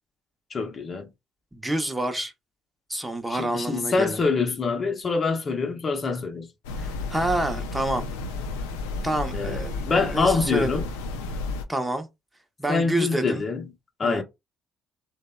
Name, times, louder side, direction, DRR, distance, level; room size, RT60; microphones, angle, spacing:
voice 1, 0.5-1.1 3.3-6.5 9.3-10.9 12.7-13.6 14.0-14.2, left 4 dB, 40° left, 0.6 m, -25 dB
voice 2, 1.5-2.3 2.9-4.2 6.8-8.0 9.0-10.8 11.7-12.1 12.6-13.4 14.0-14.2, right 1 dB, 10° right, 0.6 m, -28 dB
sound 1, 6.6-11.6, left 3 dB, 85° left, 0.3 m, -32 dB
2.7 x 2.0 x 2.2 m
hypercardioid pair, 55°, 0 cm